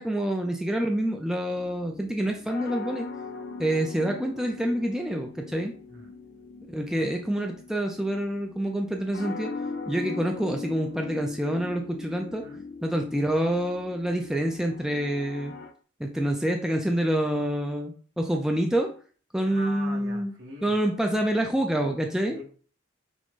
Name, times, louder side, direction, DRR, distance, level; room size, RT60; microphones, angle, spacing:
voice 1, 0.0-3.1 3.6-5.7 6.6-9.5 9.9-12.5 12.8-15.5 16.0-18.9 19.3-20.3 20.6-22.4, right 1 dB, 5° right, 2 dB, 0.4 m, -27 dB
sound 1, 1.6-15.7, left 4 dB, 55° left, 0.5 m, -40 dB
voice 2, 19.4-20.8 22.3-22.4, right 1 dB, 70° right, -2 dB, 1.4 m, -42 dB
6.1 x 2.1 x 3.8 m, 0.42 s
head